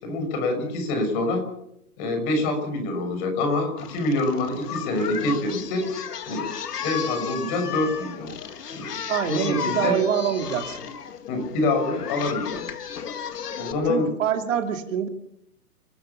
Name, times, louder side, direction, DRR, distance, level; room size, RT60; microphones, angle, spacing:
voice 1, 0.0-1.4 2.0-5.9 6.3-6.5 6.8-8.3 8.7-8.9 9.2-10.0 11.3-12.7 13.6-14.1, left 2 dB, 30° left, 5 dB, 6.5 m, -26 dB
Singing, 3.8-13.7, left 7 dB, 75° left, 2.5 m, -34 dB
voice 2, 9.1-10.8 13.9-15.1, right 9 dB, 55° right, 5 dB, 2.8 m, -25 dB
30.0 x 13.5 x 7.1 m, 0.77 s
hypercardioid pair, 155°, 47 cm